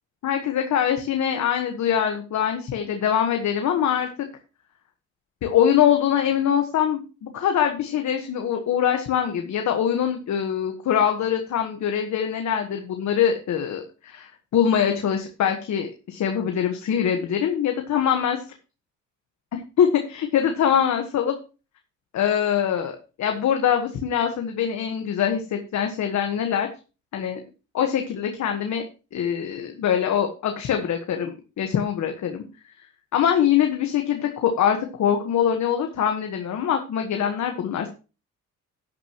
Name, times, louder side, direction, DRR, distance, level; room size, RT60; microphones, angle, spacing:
voice 1, 0.2-4.3 5.4-18.4 19.5-21.3 22.1-26.7 27.1-27.4 27.7-28.8 29.1-32.4 33.1-37.9, left 9 dB, 65° left, 5 dB, 1.4 m, -23 dB
11.5 x 9.5 x 3.0 m, 0.33 s
cardioid pair, 90°, 30 cm